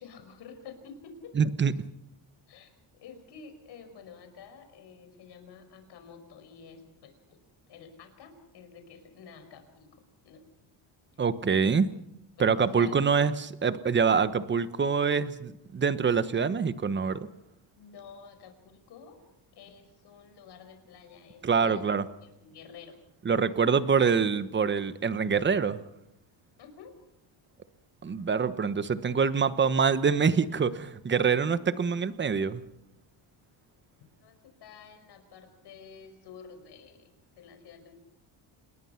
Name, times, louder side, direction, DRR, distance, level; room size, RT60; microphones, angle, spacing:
voice 1, 0.0-1.3 2.5-2.7 3.0-7.4 7.7-10.5 11.5-11.6 12.4-13.0 17.8-19.2 19.6-21.9 22.2-23.0 26.6-27.0 34.2-37.9, left 6 dB, 60° left, 7 dB, 5.5 m, -50 dB
voice 2, 1.4-1.7 11.2-11.9 12.4-17.2 21.4-22.0 23.2-25.8 28.0-32.6, right 6 dB, 25° right, 13 dB, 1.1 m, -25 dB
28.5 x 21.0 x 5.8 m, 0.80 s
cardioid pair, 130°, 46 cm